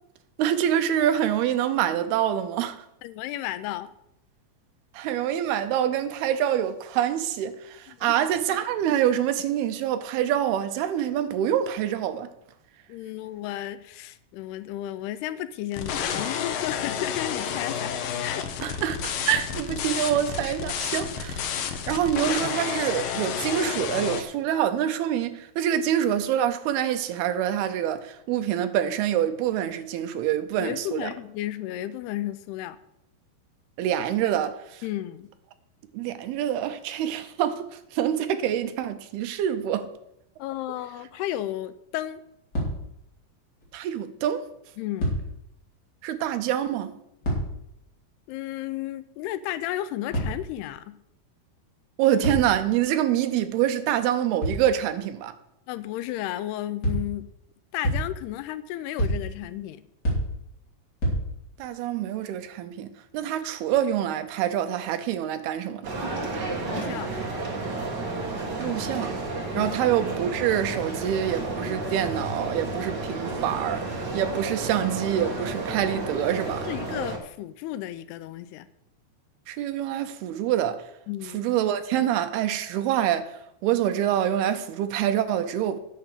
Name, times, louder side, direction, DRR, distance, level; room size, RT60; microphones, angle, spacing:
voice 1, 0.4-2.8 4.9-12.3 18.6-21.5 21.9-31.1 33.8-34.8 35.9-39.9 43.7-44.4 46.0-46.9 52.0-55.3 61.6-62.9 63.1-65.9 68.6-69.2 69.5-73.9 74.1-76.7 79.5-80.8 81.3-83.3 83.6-85.8, right 10 dB, 80° right, 2.7 m, -26 dB
voice 2, 3.0-3.9 7.9-8.2 12.9-18.4 30.6-32.8 34.8-35.3 40.4-42.2 44.8-45.1 48.3-51.0 55.7-57.3 57.7-59.8 66.6-67.2 69.5-69.7 76.6-78.7 81.1-81.5, left 13 dB, 85° left, 2.7 m, -33 dB
sound 1, 15.7-24.2, left 7 dB, 70° left, 2.5 m, -30 dB
sound 2, 42.5-43.2 43.6-43.7 45.0-45.6 47.2-47.9 50.1-50.7 52.2-52.8 54.4-54.9 56.8-57.3 57.8-58.4 59.0-59.6 60.0-60.7 61.0-61.6, equal, 25° left, 4.3 m, -29 dB
sound 3, 65.8-77.2, right 2 dB, 50° right, 1.3 m, -32 dB
9.8 x 8.3 x 6.7 m
omnidirectional pair, 4.6 m